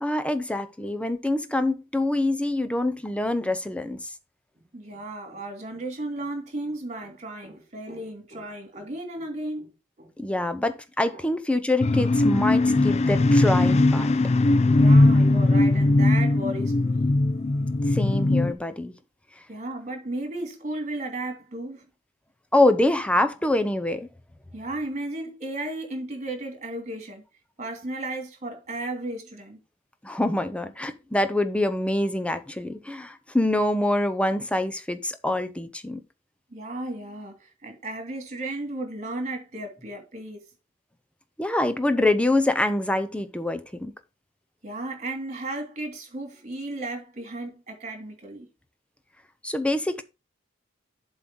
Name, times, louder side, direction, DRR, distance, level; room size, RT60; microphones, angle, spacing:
voice 1, 0.0-4.0 10.2-14.1 17.9-18.9 22.5-24.1 30.0-36.0 41.4-43.9 49.4-50.0, left 1 dB, 5° left, 0.7 m, -25 dB
voice 2, 4.7-9.7 10.0-10.1 10.4-10.5 11.1-11.2 14.7-17.2 19.5-21.8 24.5-27.2 27.6-29.6 36.5-40.5 44.6-48.5, right 2 dB, 35° right, 2.8 m, -34 dB
sound 1, 11.8-18.5, left 2 dB, 35° left, 0.4 m, -19 dB
7.4 x 4.0 x 6.2 m
head